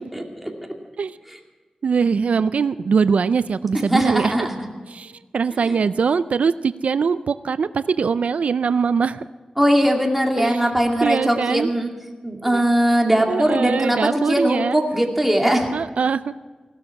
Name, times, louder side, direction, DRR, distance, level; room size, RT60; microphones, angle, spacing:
voice 1, 0.1-0.5 3.9-4.7 5.7-5.8 9.6-11.9 12.2-15.7, equal, 5° right, 1 dB, 2.3 m, -20 dB
voice 2, 1.8-4.3 4.9-9.2 10.4-10.6 11.0-11.7 12.5-12.6 13.3-14.8 15.7-16.3, right 5 dB, 85° right, 14 dB, 0.4 m, -22 dB
16.5 x 12.0 x 5.8 m, 1.3 s
wide cardioid pair, 90°, 2 cm